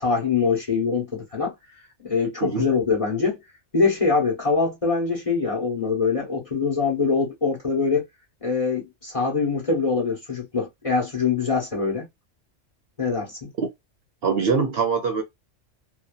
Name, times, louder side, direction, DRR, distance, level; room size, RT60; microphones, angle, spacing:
voice 1, 0.0-1.5 2.0-3.4 3.7-8.0 8.4-12.1 13.0-13.5, left 4 dB, 30° left, 1.0 m, -23 dB
voice 2, 14.2-15.2, right 5 dB, 60° right, 0.8 m, -23 dB
2.6 x 2.4 x 2.3 m
omnidirectional pair, 1.3 m